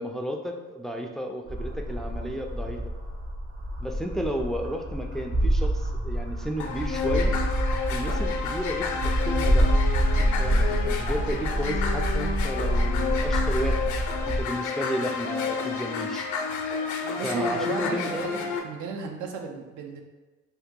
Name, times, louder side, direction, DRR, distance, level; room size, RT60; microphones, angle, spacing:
voice 1, 0.0-2.8 3.8-7.3 7.9-9.7 10.2-13.9 14.2-16.3 17.2-18.3, equal, ahead, 2 dB, 0.3 m, -33 dB
sound 1, 1.5-14.4, right 1 dB, 50° right, 1.0 m, -26 dB
sound 2, 6.6-18.6, left 5 dB, 75° left, 0.5 m, -30 dB
voice 2, 17.0-20.0, right 5 dB, 75° right, 2 dB, 0.6 m, -35 dB
2.8 x 2.6 x 3.6 m, 1.3 s
cardioid pair, 90°, 30 cm